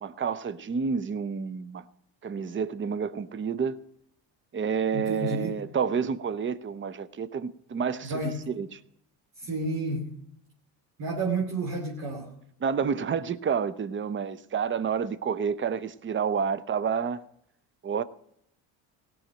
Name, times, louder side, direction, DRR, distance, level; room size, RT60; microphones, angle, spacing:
voice 1, 0.0-1.8 2.2-3.8 4.5-8.1 8.6-8.7 12.6-17.2 17.8-18.0, right 6 dB, 30° right, 0.7 m, -29 dB
voice 2, 4.9-5.6 8.0-8.4 9.4-10.1 11.0-12.3, right 2 dB, 55° right, 2.8 m, -30 dB
17.0 x 6.4 x 8.9 m
supercardioid pair, 80°, 42 cm